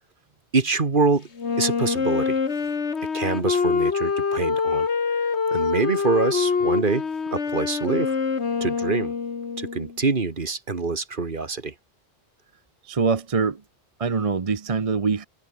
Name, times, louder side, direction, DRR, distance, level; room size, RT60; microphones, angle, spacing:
voice 1, 0.5-1.3 1.6-2.4 3.1-4.9 5.5-8.2 8.6-9.1 9.6-11.7, right 4 dB, 50° right, 1.9 m, -25 dB
Wind instrument woodwind instrument, 1.4-9.9, left 5 dB, 80° left, 2.0 m, -25 dB
voice 2, 12.8-13.6 14.0-15.3, right 5 dB, 35° right, 0.9 m, -24 dB
omnidirectional pair, 1.1 m